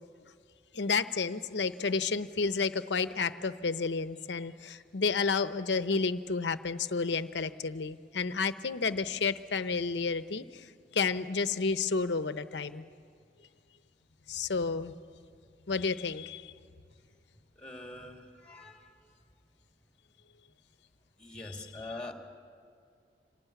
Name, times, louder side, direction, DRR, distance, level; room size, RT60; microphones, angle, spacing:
voice 1, 0.7-10.7 10.9-12.9 14.3-14.9 15.7-16.5 21.4-21.5, left 4 dB, 75° left, 12 dB, 0.8 m, -31 dB
voice 2, 17.6-19.0 21.2-22.1, left 2 dB, 5° left, 3 dB, 2.4 m, -44 dB
26.5 x 18.5 x 9.3 m, 2.3 s
head